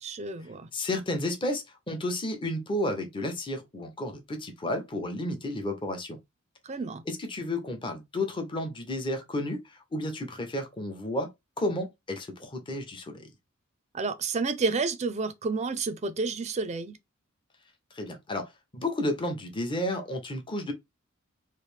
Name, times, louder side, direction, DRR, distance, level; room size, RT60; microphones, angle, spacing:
voice 1, 0.0-0.7 6.7-7.0 13.9-17.0, right 4 dB, 35° right, 0.4 m, -30 dB
voice 2, 0.7-6.2 7.1-11.3 11.6-13.3 17.9-20.7, left 1 dB, 25° left, 0.7 m, -32 dB
3.2 x 2.5 x 3.2 m
head